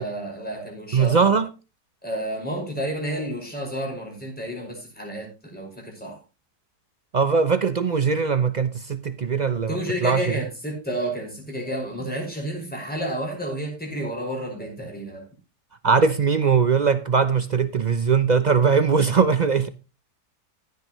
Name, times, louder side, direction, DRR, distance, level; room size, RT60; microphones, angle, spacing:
voice 1, 0.0-1.3 2.0-6.2 9.7-15.2, right 1 dB, 5° left, 5.5 m, -31 dB
voice 2, 0.9-1.5 7.1-10.3 15.8-19.7, right 5 dB, 65° right, 0.4 m, -20 dB
15.5 x 9.3 x 3.1 m
omnidirectional pair, 1.7 m